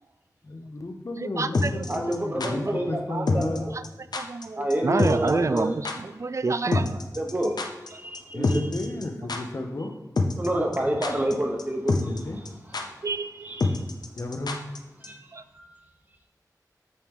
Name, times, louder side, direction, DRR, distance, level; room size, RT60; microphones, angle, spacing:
voice 1, 0.4-3.8 8.3-9.9 11.9-12.4 14.1-14.6, left 2 dB, 50° left, 3 dB, 1.0 m, -33 dB
voice 2, 1.2-2.0 3.1-3.3 3.7-3.8 4.1-7.0 13.0-13.8 15.3-15.4, right 3 dB, 50° right, 13 dB, 0.4 m, -28 dB
sound 1, 1.5-2.5 3.3-3.6 3.8-3.9 4.1-4.4 4.7-4.8 5.0-5.3 5.6-5.7 5.8-5.9 6.7-7.9 8.1-8.2 8.4-9.0 9.3-9.4 10.2-10.5 10.7-11.3 11.6-11.7 11.9-12.2 12.4-12.5 12.7-12.8 13.6-14.8 15.0-15.1, left 3 dB, 85° left, 0.7 m, -26 dB
voice 3, 1.9-3.6 4.6-5.7 7.2-7.5 7.9-8.6 10.4-12.1 13.5-13.6 15.0-15.2 15.5-15.7, right 1 dB, 25° right, 1 dB, 1.0 m, -28 dB
8.4 x 4.5 x 3.7 m, 1.1 s
wide cardioid pair, 80°, 7 cm